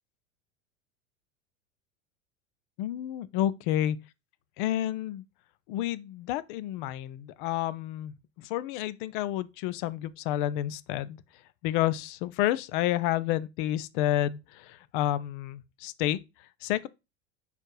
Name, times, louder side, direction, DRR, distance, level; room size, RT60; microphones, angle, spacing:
voice 1, 2.8-4.0 4.6-5.2 5.7-11.2 11.6-16.2 16.6-16.9, left 13 dB, 45° left, 0.6 m, -30 dB
5.3 x 4.4 x 4.7 m
figure-of-eight pair, 85°, 37 cm